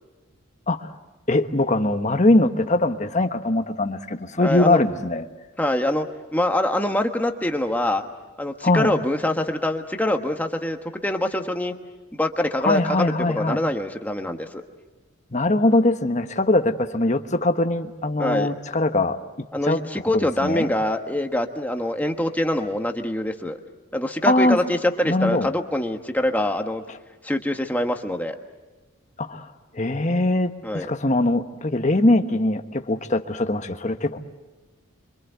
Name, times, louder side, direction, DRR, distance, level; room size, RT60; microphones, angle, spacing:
voice 1, 1.3-5.3 8.6-8.9 12.6-13.6 15.3-19.8 20.1-20.7 24.3-24.6 25.0-25.5 29.2-34.2, left 2 dB, 35° left, 7 dB, 1.2 m, -22 dB
voice 2, 4.4-4.8 5.6-6.1 6.3-8.0 8.4-11.7 12.1-14.6 18.2-18.5 19.5-23.6 23.9-26.8 27.2-28.4 30.6-30.9, left 1 dB, 10° left, 5 dB, 1.3 m, -24 dB
27.5 x 25.0 x 8.1 m, 1.2 s
head